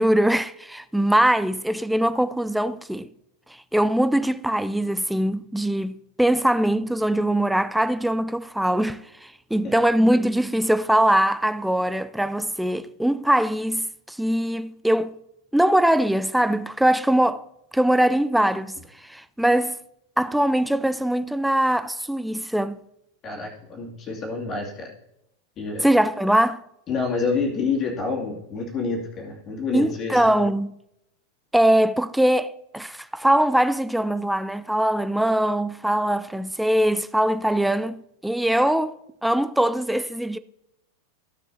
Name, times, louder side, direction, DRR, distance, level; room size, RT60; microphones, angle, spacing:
voice 1, 0.0-3.1 3.7-15.1 15.5-17.4 17.7-18.7 19.0-19.8 20.2-22.8 25.8-26.6 29.7-30.7 31.5-38.9 39.2-40.4, right 1 dB, ahead, 0.4 m, -22 dB
voice 2, 23.2-24.9 25.6-25.9 26.9-30.3, left 4 dB, 30° left, 2.5 m, -28 dB
15.0 x 6.7 x 2.8 m
figure-of-eight pair, 90°, 0 cm